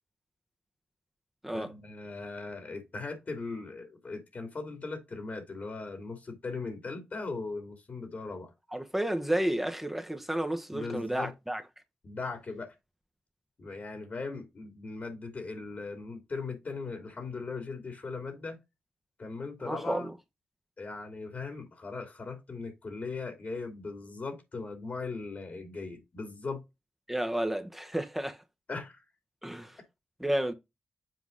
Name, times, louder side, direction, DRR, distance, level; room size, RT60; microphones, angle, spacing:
voice 1, 1.5-8.5 10.7-11.3 12.0-12.7 13.6-18.6 19.2-20.1 20.8-26.6 28.7-29.0, left 3 dB, 50° left, 2.8 m, -39 dB
voice 2, 8.7-11.6 19.6-20.1 27.1-28.4 29.4-29.8 30.2-30.5, right 1 dB, 5° right, 1.1 m, -31 dB
7.6 x 4.5 x 3.9 m
cardioid pair, 65°, 3 cm